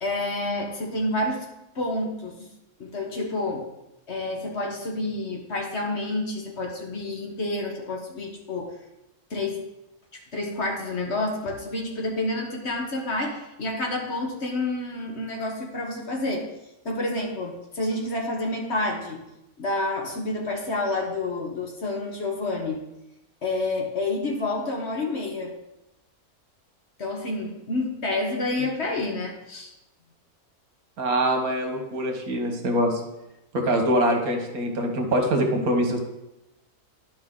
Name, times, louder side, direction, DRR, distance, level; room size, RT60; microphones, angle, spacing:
voice 1, 0.0-1.4 1.7-2.5 2.8-3.7 4.1-8.7 9.3-9.6 10.3-16.5 16.8-19.2 19.6-22.8 23.4-25.5 27.0-29.7, left 2 dB, 50° left, 1 dB, 1.3 m, -29 dB
voice 2, 31.0-33.0 33.5-36.0, right 1 dB, 70° right, 3 dB, 1.6 m, -24 dB
11.0 x 5.2 x 3.7 m, 0.91 s
omnidirectional pair, 1.6 m